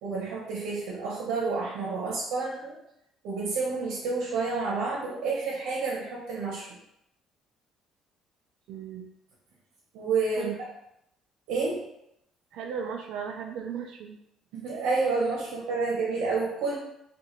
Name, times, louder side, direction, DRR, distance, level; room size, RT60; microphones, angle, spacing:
voice 1, 0.0-2.8 3.2-6.8 9.9-10.5 11.5-11.8 14.5-16.8, right 4 dB, 90° right, -4 dB, 0.9 m, -29 dB
voice 2, 8.7-9.1 10.4-10.6 12.5-14.2, right 7 dB, 70° right, 3 dB, 0.3 m, -36 dB
2.9 x 2.5 x 3.9 m, 0.80 s
cardioid pair, 135°, 0 cm